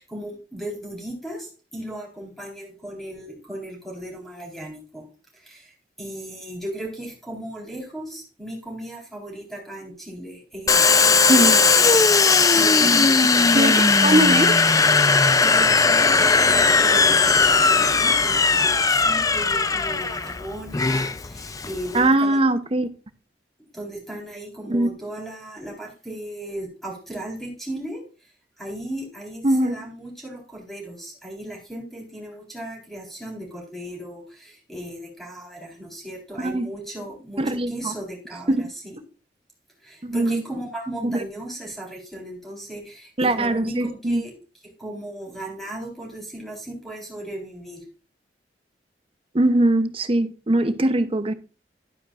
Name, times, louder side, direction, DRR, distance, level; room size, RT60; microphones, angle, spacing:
voice 1, 0.0-5.1 5.3-14.5 15.4-22.4 23.7-28.0 28.6-39.0 39.8-44.3 44.8-47.8, right 1 dB, ahead, 4.0 m, -36 dB
Domestic sounds home sounds, 10.7-22.1, left 4 dB, 20° left, 0.4 m, -18 dB
voice 2, 11.3-11.6 12.8-13.1 13.5-14.6 21.9-22.9 24.7-24.9 29.4-29.8 36.4-36.7 37.4-37.9 38.5-38.7 40.0-40.4 41.0-41.2 43.2-44.2 49.3-51.3, right 1 dB, 30° right, 0.7 m, -21 dB
11.5 x 9.8 x 2.5 m
head